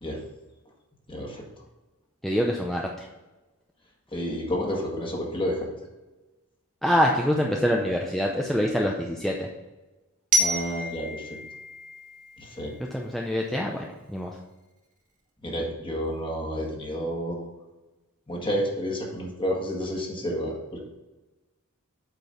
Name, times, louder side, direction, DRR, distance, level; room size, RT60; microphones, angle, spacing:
voice 1, 1.1-1.4 4.1-5.7 10.4-11.3 12.4-12.7 15.4-17.4 18.3-20.8, equal, 25° left, -1 dB, 1.6 m, -30 dB
voice 2, 2.2-3.1 6.8-9.5 12.9-14.3, equal, ahead, -1 dB, 0.6 m, -25 dB
Glockenspiel, 10.3-13.2, right 1 dB, 35° right, 1.4 m, -29 dB
8.1 x 4.5 x 5.6 m, 1.1 s
head